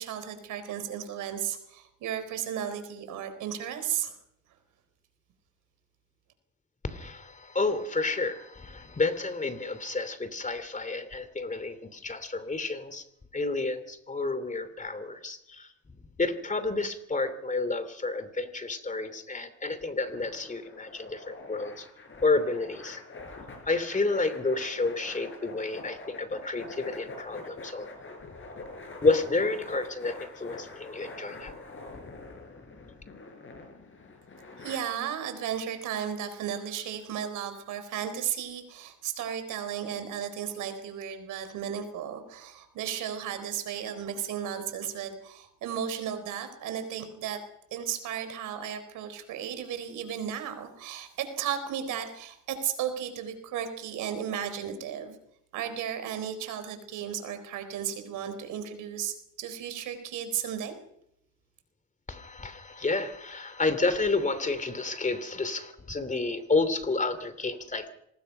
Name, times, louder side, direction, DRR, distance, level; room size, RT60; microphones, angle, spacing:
voice 1, 0.0-4.1 34.6-47.4 47.7-55.2 55.5-60.8, right 9 dB, 90° right, 9 dB, 4.2 m, -34 dB
voice 2, 6.8-13.0 13.3-15.7 16.2-21.8 22.2-23.0 23.7-27.9 29.0-31.5 62.1-67.9, left 3 dB, 25° left, 12 dB, 2.9 m, -30 dB
sound 1, 20.1-34.8, left 3 dB, 40° left, 6.9 m, -44 dB
26.0 x 20.0 x 5.6 m, 0.77 s
cardioid pair, 90°, 30 cm